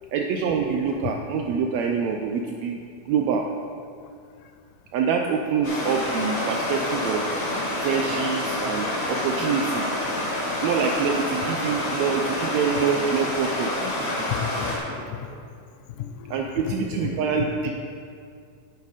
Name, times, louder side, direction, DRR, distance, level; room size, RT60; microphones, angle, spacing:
voice 1, 0.1-2.8 3.1-3.4 4.9-7.3 7.8-9.9 10.6-13.7 16.3-17.8, right 6 dB, 85° right, 2 dB, 1.6 m, -25 dB
Stream, 5.6-14.8, left 1 dB, 35° left, 1.5 m, -28 dB
voice 2, 14.3-15.3 16.0-17.1, left 9 dB, 85° left, 8 dB, 2.0 m, -34 dB
8.6 x 8.5 x 4.1 m, 2.3 s
omnidirectional pair, 3.6 m